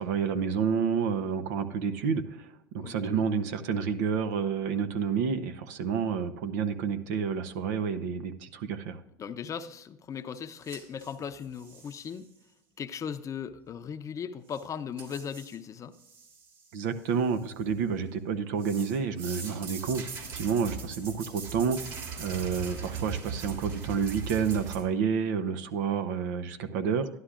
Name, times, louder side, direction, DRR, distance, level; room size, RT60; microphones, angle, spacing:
voice 1, 0.0-2.2 2.7-9.0 16.7-27.1, right 6 dB, 75° right, 10 dB, 0.7 m, -29 dB
voice 2, 2.8-3.3 9.2-12.3 12.8-15.9, left 7 dB, 35° left, 11 dB, 0.6 m, -38 dB
sound 1, 10.6-12.1 14.5-14.6 15.0-15.6 15.9-16.7 17.1-17.9 18.6-24.8, right 6 dB, 55° right, 2.9 m, -40 dB
11.5 x 11.5 x 2.5 m, 0.84 s
hypercardioid pair, 90°, 9 cm